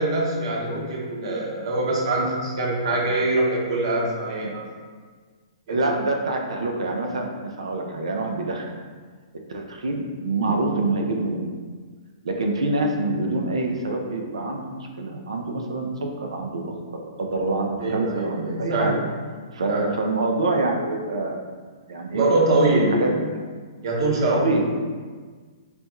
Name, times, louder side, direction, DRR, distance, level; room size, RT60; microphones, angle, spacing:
voice 1, 0.0-4.6 5.7-5.9 10.5-10.8 17.8-19.0 19.7-19.9 22.1-23.0 23.8-24.5, right 2 dB, 60° right, -2 dB, 0.9 m, -23 dB
voice 2, 5.7-8.6 9.5-11.4 12.2-15.9 16.2-19.0 19.5-21.4 21.9-22.3 22.9-23.2 24.3-24.7, right 2 dB, 80° right, 2 dB, 0.5 m, -26 dB
3.4 x 2.3 x 4.1 m, 1.5 s
hypercardioid pair, 130°, 3 cm